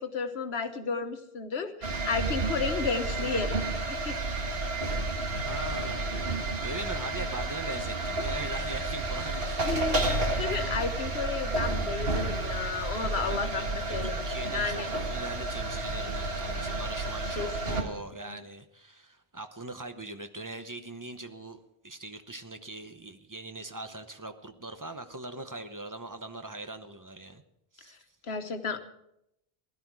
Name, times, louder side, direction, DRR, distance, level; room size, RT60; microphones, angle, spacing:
voice 1, 0.0-3.6 3.9-4.2 9.6-14.2 14.5-14.9 17.4-18.4 28.2-28.8, left 5 dB, 75° left, 8 dB, 1.4 m, -33 dB
sound 1, 1.8-17.8, right 2 dB, 65° right, 1.9 m, -31 dB
voice 2, 5.4-6.1 6.6-9.6 13.3-21.6 21.8-27.4 27.7-28.0, right 2 dB, 20° right, 8 dB, 0.9 m, -41 dB
16.5 x 12.0 x 4.7 m, 0.80 s
omnidirectional pair, 1.1 m